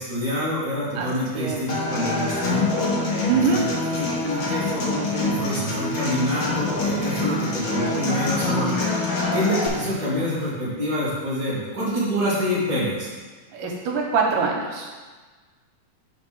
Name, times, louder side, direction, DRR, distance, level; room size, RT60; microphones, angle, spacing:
voice 1, 0.0-2.6 3.2-3.7 4.0-13.1, equal, 35° right, -8 dB, 2.4 m, -27 dB
Human voice / Acoustic guitar, 1.7-9.7, left 2 dB, 65° left, 1.2 m, -25 dB
voice 2, 3.3-3.6 13.5-15.0, right 5 dB, 75° right, 0 dB, 2.2 m, -23 dB
5.3 x 5.2 x 5.9 m, 1.4 s
omnidirectional pair, 4.0 m